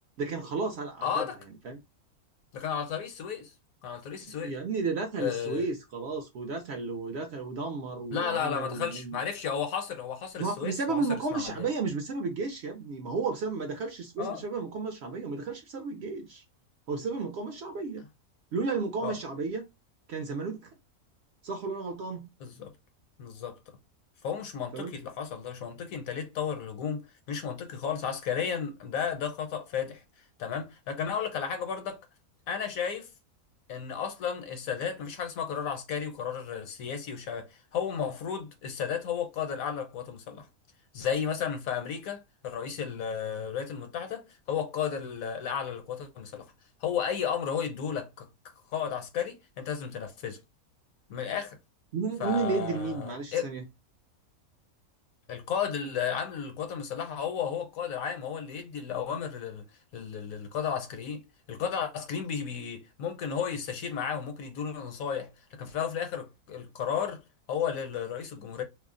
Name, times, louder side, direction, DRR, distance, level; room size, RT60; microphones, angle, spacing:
voice 1, 0.2-1.3 1.6-1.8 4.2-9.2 10.4-16.4 16.9-18.0 18.5-19.7 20.1-20.7 21.4-22.3 24.7-24.9 51.9-53.6, right 4 dB, 65° right, 0.7 m, -33 dB
voice 2, 1.0-1.4 2.5-3.5 3.8-4.5 5.2-5.7 8.1-11.7 14.2-14.4 19.0-19.2 22.4-22.7 23.2-23.6 24.2-27.0 27.3-30.0 30.4-32.0 32.5-33.1 33.7-40.5 40.9-46.4 46.8-48.3 48.7-50.4 51.1-51.6 52.2-53.5 55.3-59.6 59.9-61.2 61.5-67.2 67.5-68.6, left 7 dB, 75° left, 1.1 m, -33 dB
2.5 x 2.0 x 3.6 m
omnidirectional pair, 1.5 m